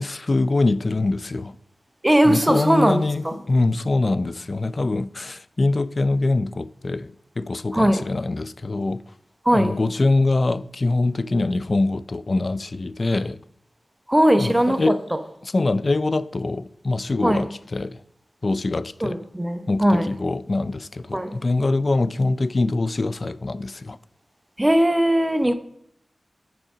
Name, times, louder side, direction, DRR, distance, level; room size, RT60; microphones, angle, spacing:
voice 1, 0.0-1.5 2.2-9.0 9.5-13.4 14.4-15.0 15.4-18.0 18.4-19.2 19.7-24.0, left 2 dB, 50° left, 0.4 m, -24 dB
voice 2, 2.0-3.0 3.2-3.4 7.7-8.1 9.4-9.8 14.1-15.2 17.2-17.5 19.0-20.1 21.1-21.4 24.6-25.5, right 1 dB, 15° right, 0.8 m, -19 dB
7.7 x 4.9 x 6.1 m
cardioid pair, 50°, 0 cm